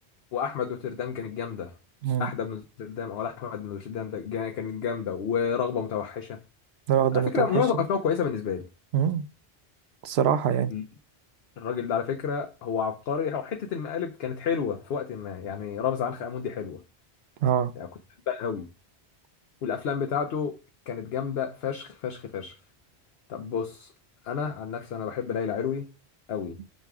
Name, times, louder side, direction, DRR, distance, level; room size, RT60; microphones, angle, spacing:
voice 1, 0.3-1.7 2.2-6.4 7.1-8.7 10.7-10.8 11.6-16.8 17.8-17.9 18.3-18.7 19.6-20.6 20.9-22.5 23.3-23.9 24.2-25.9 26.3-26.6, left 7 dB, 70° left, 0.9 m, -30 dB
voice 2, 6.9-7.6 8.9-9.2 10.0-10.7 17.4-17.7, right 9 dB, 75° right, 0.9 m, -24 dB
6.5 x 3.5 x 4.7 m
omnidirectional pair, 1.1 m